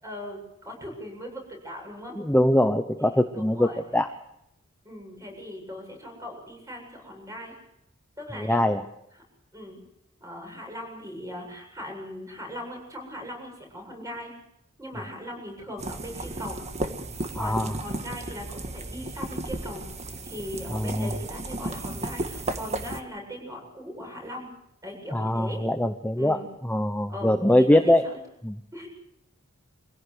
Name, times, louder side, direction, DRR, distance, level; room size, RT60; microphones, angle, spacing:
voice 1, 0.0-2.2 3.0-3.8 4.8-7.6 8.2-8.6 9.5-9.8 10.2-14.3 14.8-16.6 17.3-19.8 20.2-24.5 24.8-25.6 26.2-26.5 27.1-28.2 28.7-28.9, left 1 dB, 15° right, 2 dB, 7.6 m, -39 dB
voice 2, 2.2-4.1 8.4-8.8 17.4-17.7 20.7-21.1 25.1-28.0 28.4-28.6, left 1 dB, 10° left, 7 dB, 0.8 m, -22 dB
sound 1, 15.8-23.0, right 2 dB, 35° right, 1.7 m, -34 dB
24.5 x 16.5 x 8.0 m, 0.80 s
head